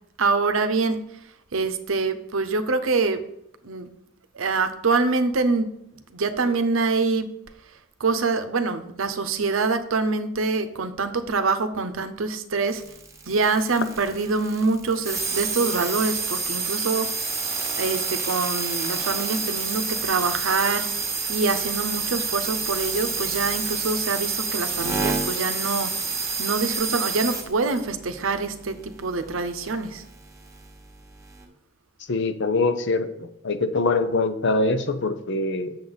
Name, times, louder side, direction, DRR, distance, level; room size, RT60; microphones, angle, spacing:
voice 1, 0.2-1.0 1.5-3.2 3.6-3.9 4.3-5.7 6.1-7.3 8.0-12.8 13.3-17.1 17.8-20.9 21.3-25.9 26.4-30.0, right 4 dB, 70° right, 9 dB, 0.8 m, -25 dB
sound 1, 12.7-30.7 31.2-31.5, right 4 dB, 15° right, 1.2 m, -29 dB
voice 2, 32.1-33.1 33.4-35.8, left 3 dB, 60° left, 9 dB, 0.7 m, -23 dB
7.8 x 7.1 x 4.0 m, 0.77 s
head